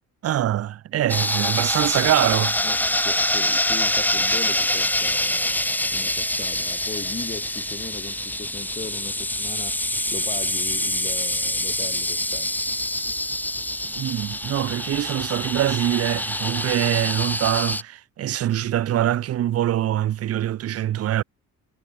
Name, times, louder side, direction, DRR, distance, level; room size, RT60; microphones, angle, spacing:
voice 1, 0.2-2.6 14.0-21.2, right 12 dB, 50° right, 0.6 m, -24 dB
sound 1, 1.1-17.8, left 1 dB, 5° left, 1.7 m, -25 dB
voice 2, 2.6-9.8 10.1-12.7, left 4 dB, 25° left, 2.5 m, -38 dB
cardioid pair, 90°, 30 cm